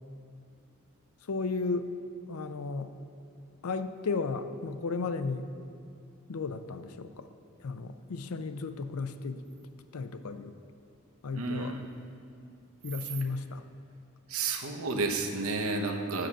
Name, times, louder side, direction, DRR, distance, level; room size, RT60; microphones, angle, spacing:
voice 1, 1.3-1.9 2.3-2.9 3.6-5.5 6.3-7.3 7.6-10.5 11.2-11.8 12.8-13.6, left 4 dB, 85° left, 10 dB, 0.5 m, -34 dB
voice 2, 11.3-11.8 14.3-16.3, right 3 dB, 80° right, 4 dB, 0.9 m, -31 dB
7.7 x 7.4 x 6.7 m, 2.5 s
head